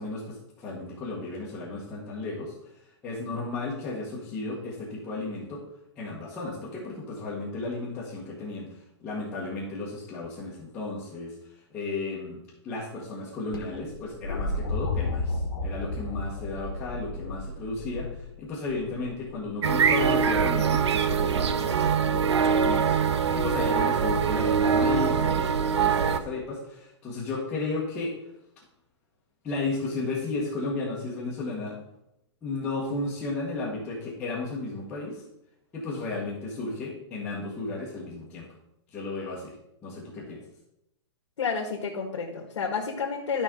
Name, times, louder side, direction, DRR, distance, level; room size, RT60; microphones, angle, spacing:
voice 1, 0.0-2.5 3.0-5.6 5.9-8.7 9.0-11.3 11.7-12.4 12.6-18.1 18.4-28.1 29.4-31.8 32.4-35.2 35.7-38.5 38.9-39.5 39.8-40.4, left 3 dB, 10° left, -9 dB, 1.3 m, -34 dB
sound 1, 13.5-19.5 21.1-21.6 24.1-24.2, left 2 dB, 50° left, 1.4 m, -33 dB
sound 2, 19.6-26.2, right 6 dB, 65° right, 0.7 m, -23 dB
voice 2, 41.4-43.4, left 5 dB, 90° left, 0 dB, 1.8 m, -30 dB
12.5 x 5.3 x 3.8 m, 0.82 s
hypercardioid pair, 180°, 15 cm